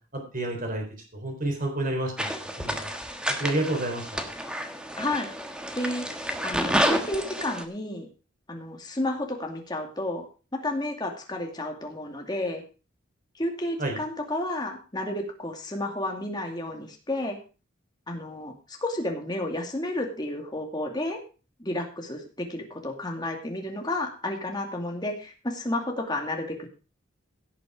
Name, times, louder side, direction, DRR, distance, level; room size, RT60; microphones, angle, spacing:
voice 1, 0.1-0.9 1.1-2.3 2.6-2.9 3.3-4.2 13.8-14.0, right 1 dB, 40° right, 3 dB, 3.9 m, -29 dB
sound 1, 2.2-7.6, equal, 5° right, 1.3 m, -30 dB
voice 2, 5.0-5.3 5.7-8.1 8.5-10.2 10.6-12.6 13.4-17.4 18.1-21.2 21.6-26.7, left 1 dB, 20° left, 2 dB, 2.5 m, -31 dB
16.5 x 7.1 x 4.9 m, 0.35 s
head